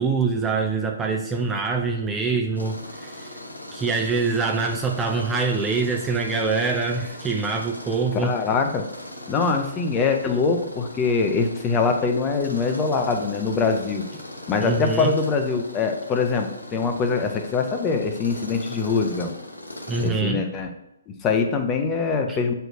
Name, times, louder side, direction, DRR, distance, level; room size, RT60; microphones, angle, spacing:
voice 1, 0.0-3.4 3.7-8.3 14.6-15.2 19.9-20.4 22.3-22.4, right 4 dB, 10° right, 1 dB, 0.5 m, -24 dB
Tools, 2.5-20.1, left 1 dB, 90° left, 1.1 m, -39 dB
voice 2, 8.1-8.9 9.3-14.0 14.5-19.3 20.0-20.7 21.1-22.5, left 4 dB, 20° left, 4 dB, 0.8 m, -23 dB
7.8 x 4.6 x 2.6 m, 0.88 s
figure-of-eight pair, 130°, 0 cm